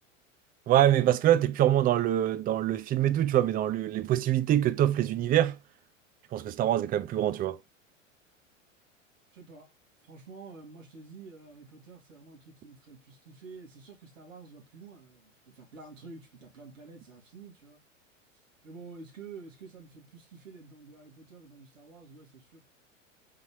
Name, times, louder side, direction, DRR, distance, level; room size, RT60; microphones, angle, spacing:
voice 1, 0.7-5.6 6.3-7.6, right 12 dB, 25° right, 0.5 m, -24 dB
voice 2, 9.3-9.7 10.0-17.8 18.6-22.7, right 4 dB, 75° right, 3.2 m, -49 dB
4.9 x 4.0 x 4.8 m
figure-of-eight pair, 85°, 39 cm